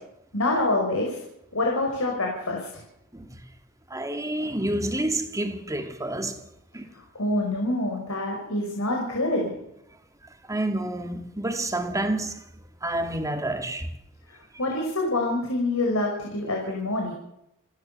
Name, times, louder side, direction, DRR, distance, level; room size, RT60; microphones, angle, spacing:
voice 1, 0.3-1.2 1.5-2.8 7.1-9.5 14.6-17.1, left 2 dB, 75° left, 5.5 m, -26 dB
voice 2, 3.9-6.5 6.7-6.9 10.5-12.4 12.8-13.9, right 1 dB, 15° right, 2.2 m, -29 dB
29.5 x 13.0 x 6.8 m
head